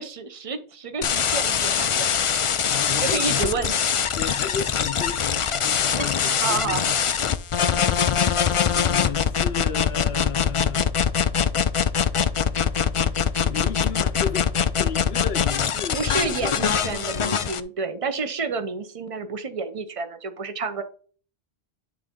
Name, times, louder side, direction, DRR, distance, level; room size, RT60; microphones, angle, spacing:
voice 1, 0.0-2.2 2.9-3.7 4.2-4.3 6.0-7.3 15.9-20.8, right 4 dB, 35° right, 0.9 m, -30 dB
sound 1, 1.0-17.6, left 7 dB, 50° left, 0.4 m, -23 dB
voice 2, 2.7-3.6 4.2-7.0 7.6-8.3 8.7-10.9 13.5-16.8, left 8 dB, 75° left, 0.9 m, -34 dB
9.8 x 3.9 x 3.6 m
omnidirectional pair, 1.0 m